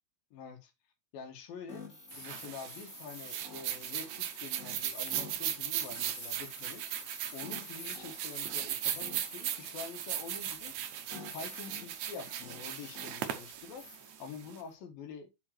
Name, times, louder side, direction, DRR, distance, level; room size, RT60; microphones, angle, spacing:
voice 1, 0.3-0.7 1.1-1.9 2.2-6.8 7.3-10.7 11.1-13.8 14.2-15.3, left 5 dB, 70° left, 3.2 m, -46 dB
sound 1, 1.7-14.7, left 2 dB, 20° left, 3.2 m, -49 dB
sound 2, 2.1-14.6, right 11 dB, 75° right, 1.6 m, -38 dB
7.0 x 5.2 x 4.5 m
omnidirectional pair, 4.4 m